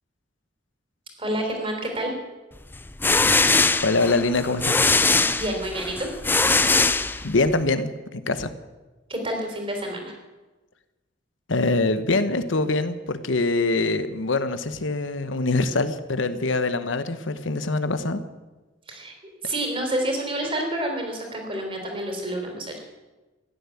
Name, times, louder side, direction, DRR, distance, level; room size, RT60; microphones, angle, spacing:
voice 1, 1.2-2.1 5.4-6.1 9.1-10.1 18.9-19.1 19.4-22.8, right 1 dB, 30° right, 2 dB, 3.7 m, -28 dB
sound 1, 2.7-7.6, left 3 dB, 10° left, 0.5 m, -21 dB
voice 2, 3.8-4.8 7.2-8.5 11.5-18.2, left 3 dB, 85° left, 11 dB, 1.1 m, -24 dB
15.0 x 10.5 x 8.5 m, 1.2 s
head